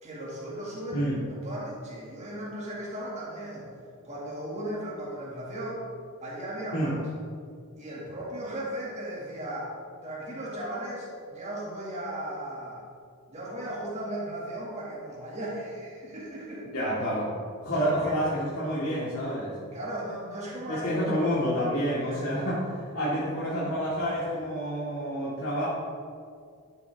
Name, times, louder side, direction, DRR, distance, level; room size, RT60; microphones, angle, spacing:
voice 1, 0.0-3.7 4.0-5.8 6.2-7.0 7.8-9.7 10.0-12.8 13.3-16.7 17.8-18.2 19.7-21.1 22.0-22.5, right 1 dB, 30° right, -6 dB, 2.1 m, -36 dB
voice 2, 16.7-17.3 17.6-19.5 20.7-25.7, equal, 85° left, -9 dB, 2.4 m, -28 dB
12.0 x 7.6 x 3.6 m, 2.3 s
head